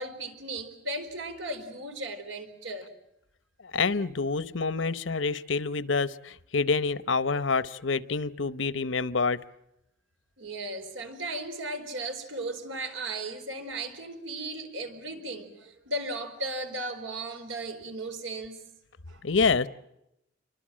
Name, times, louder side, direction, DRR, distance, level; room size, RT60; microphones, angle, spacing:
voice 1, 0.0-2.9 10.4-18.6 19.1-19.2, right 2 dB, 90° right, 7 dB, 4.5 m, -36 dB
voice 2, 3.7-9.4 19.2-19.7, left 4 dB, 75° left, 15 dB, 0.9 m, -27 dB
28.5 x 24.5 x 7.6 m, 0.84 s
head